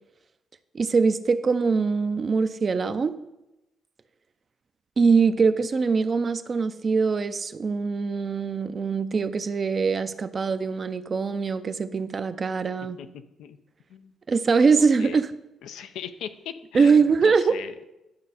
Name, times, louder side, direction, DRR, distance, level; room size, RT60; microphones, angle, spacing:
voice 1, 0.7-3.1 5.0-13.0 14.3-15.3 16.7-17.6, right 5 dB, 40° right, 12 dB, 0.5 m, -22 dB
voice 2, 13.0-13.6 13.9-14.1 14.8-15.2 15.6-17.7, left 9 dB, 85° left, 9 dB, 0.6 m, -39 dB
11.5 x 5.3 x 4.2 m, 0.95 s
cardioid pair, 90°, 0 cm